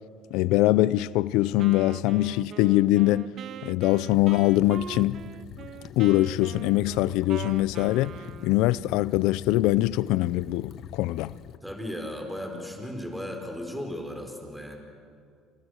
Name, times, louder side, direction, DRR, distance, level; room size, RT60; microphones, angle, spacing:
voice 1, 0.3-3.3 3.6-5.2 6.0-8.1 8.4-11.3, left 17 dB, 85° left, 0.6 m, -23 dB
Wind instrument woodwind instrument, 1.6-8.7, right 10 dB, 50° right, 0.6 m, -42 dB
sound 1, 4.1-11.6, left 10 dB, 55° left, 1.1 m, -44 dB
voice 2, 11.6-14.8, left 1 dB, ahead, 4.5 m, -36 dB
29.5 x 28.5 x 6.5 m
cardioid pair, 135°, 0 cm